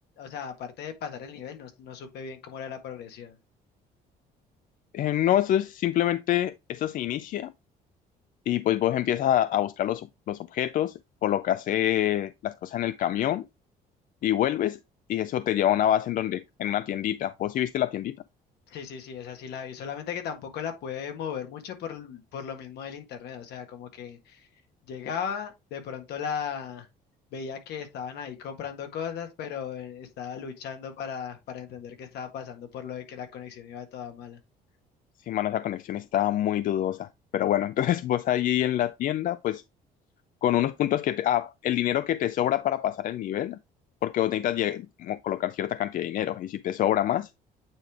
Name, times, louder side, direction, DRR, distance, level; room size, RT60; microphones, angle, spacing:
voice 1, 0.2-3.4 18.7-24.5 24.8-26.9 27.3-34.4, left 7 dB, 75° left, 1.6 m, -37 dB
voice 2, 4.9-7.5 8.5-10.9 11.2-13.4 14.2-14.8 15.1-18.1 35.3-39.6 40.4-43.6 44.0-47.3, left 12 dB, 55° left, 0.4 m, -26 dB
8.8 x 3.3 x 3.5 m
cardioid pair, 110°, 17 cm